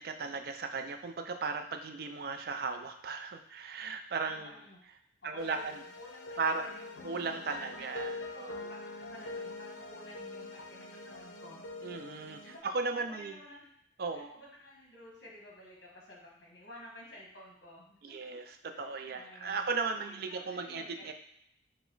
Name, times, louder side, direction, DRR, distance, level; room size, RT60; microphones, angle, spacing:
voice 1, 0.0-4.5 5.2-5.8 6.4-6.6 7.0-8.5 11.8-13.4 14.0-14.3 18.0-18.4 18.8-21.1, right 4 dB, 55° right, 6 dB, 0.4 m, -36 dB
voice 2, 4.3-4.8 5.2-6.9 7.5-7.9 8.3-11.6 12.4-13.7 14.1-18.2 18.5-19.7 20.1-21.1, left 1 dB, 60° left, -2 dB, 1.1 m, -53 dB
sound 1, 5.4-12.6, left 2 dB, 85° left, 0.5 m, -44 dB
4.8 x 2.1 x 3.9 m, 0.72 s
head